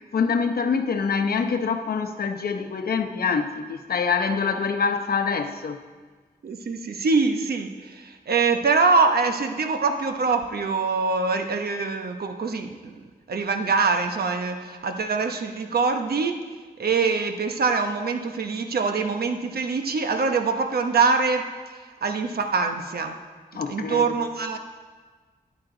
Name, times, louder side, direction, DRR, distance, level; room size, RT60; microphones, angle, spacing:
voice 1, 0.0-5.8 23.5-24.1, left 5 dB, 70° left, 6 dB, 0.9 m, -25 dB
voice 2, 6.4-13.0 13.3-16.4 16.8-21.5 21.7-23.2 23.7-24.6, right 4 dB, 75° right, 6 dB, 1.0 m, -24 dB
13.5 x 11.0 x 3.9 m, 1.4 s
wide cardioid pair, 125°, 16 cm